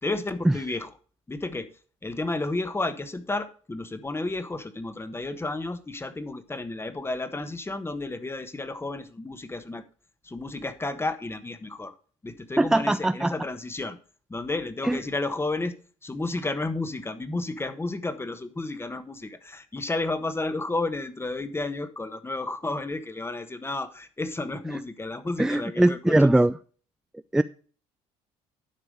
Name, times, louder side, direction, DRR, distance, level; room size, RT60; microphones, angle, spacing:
voice 1, 0.0-0.9 1.3-1.7 2.0-9.8 10.2-11.9 12.2-14.0 14.3-15.7 16.0-26.2, left 2 dB, 15° left, 11 dB, 1.3 m, -32 dB
voice 2, 12.6-13.3 14.8-15.0 25.4-26.5 27.3-27.4, right 1 dB, 5° right, 14 dB, 0.3 m, -21 dB
12.0 x 4.9 x 4.9 m, 0.40 s
supercardioid pair, 75°, 15 cm